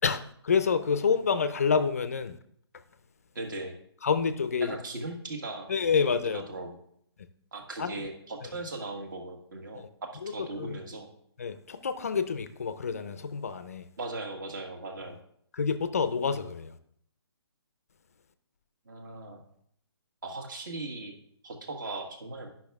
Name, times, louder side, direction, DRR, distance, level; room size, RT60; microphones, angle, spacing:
voice 1, 0.0-2.4 4.0-4.8 5.7-6.5 7.8-8.0 8.4-8.5 9.7-9.9 10.2-10.3 10.6-10.8 11.4-13.9 15.5-16.8, left 5 dB, 35° left, 0.4 m, -28 dB
voice 2, 3.3-3.7 4.6-5.7 6.0-6.8 7.5-11.1 14.0-15.2 18.9-19.4 20.2-21.1 21.4-22.5, right 2 dB, 45° right, 1.6 m, -38 dB
10.0 x 5.8 x 3.5 m
hypercardioid pair, 170°, 14 cm